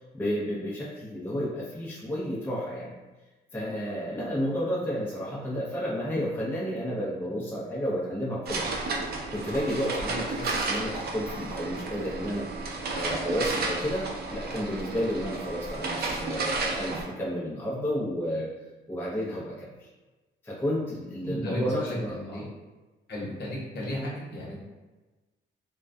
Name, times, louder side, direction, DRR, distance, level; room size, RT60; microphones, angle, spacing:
voice 1, 0.1-2.9 3.5-8.6 9.3-12.5 12.9-18.5 18.9-19.9 20.4-22.4, equal, 10° left, -6 dB, 0.5 m, -31 dB
sound 1, 8.5-17.0, right 3 dB, 50° right, 0.5 m, -32 dB
voice 2, 21.2-22.4 23.1-24.6, left 1 dB, 55° left, -5 dB, 0.9 m, -34 dB
2.2 x 2.2 x 2.6 m, 1.2 s
cardioid pair, 90°, 20 cm